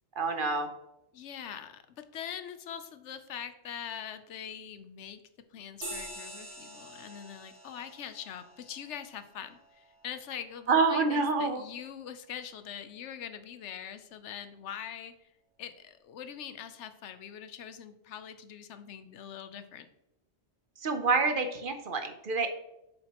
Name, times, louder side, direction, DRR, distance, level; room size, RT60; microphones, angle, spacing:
voice 1, 0.2-0.7 10.7-11.6 20.8-22.5, right 4 dB, 50° right, 7 dB, 0.9 m, -27 dB
voice 2, 1.1-5.2 5.5-15.3 15.6-19.9, left 8 dB, 90° left, 10 dB, 1.0 m, -43 dB
sound 1, 5.8-10.7, right 1 dB, 85° right, 3.2 m, -46 dB
7.7 x 7.3 x 2.9 m, 0.87 s
omnidirectional pair, 1.2 m